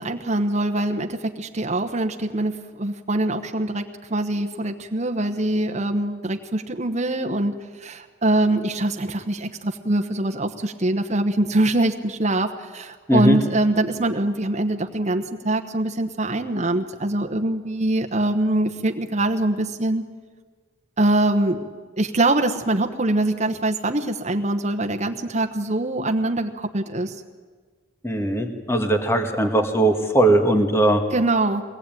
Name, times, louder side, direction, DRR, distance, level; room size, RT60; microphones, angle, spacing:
voice 1, 0.0-20.0 21.0-21.7 22.0-27.1 31.1-31.6, right 1 dB, 35° right, 4 dB, 1.1 m, -23 dB
voice 2, 28.0-31.0, right 1 dB, 15° left, 4 dB, 1.8 m, -19 dB
22.5 x 18.5 x 9.1 m, 1.5 s
head